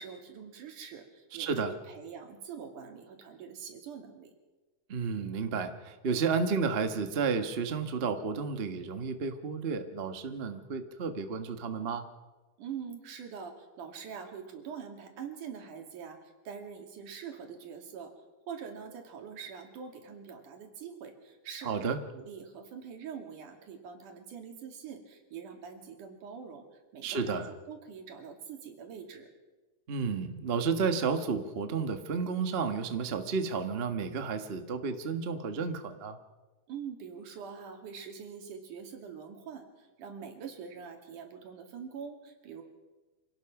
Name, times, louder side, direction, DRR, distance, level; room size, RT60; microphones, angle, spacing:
voice 1, 0.0-4.3 12.6-29.3 36.7-42.6, right 7 dB, 90° right, 4 dB, 3.9 m, -44 dB
voice 2, 1.4-1.7 4.9-12.0 21.6-22.0 27.0-27.5 29.9-36.2, right 5 dB, 55° right, 7 dB, 0.6 m, -32 dB
26.0 x 17.5 x 6.0 m, 1.2 s
omnidirectional pair, 3.5 m